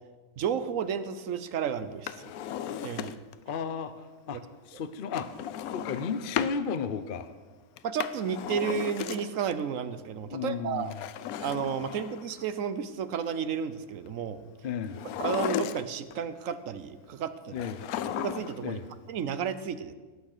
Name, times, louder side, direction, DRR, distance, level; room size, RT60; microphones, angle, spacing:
voice 1, 0.4-2.3 2.8-3.2 7.8-10.9 11.4-14.4 15.2-17.6 18.2-18.8 19.1-19.9, right 7 dB, 65° right, 12 dB, 1.0 m, -32 dB
Drawer open or close, 1.9-3.4 5.1-6.6 7.8-9.5 10.8-12.4 14.9-16.1 17.6-18.7 18.9-19.0, left 10 dB, 75° left, 1.1 m, -35 dB
voice 2, 3.5-5.3 5.7-7.3 10.3-11.0 14.6-15.0 17.5-17.8 18.6-18.9, left 6 dB, 55° left, 11 dB, 0.6 m, -34 dB
18.0 x 6.3 x 6.6 m, 1.3 s
omnidirectional pair, 1.6 m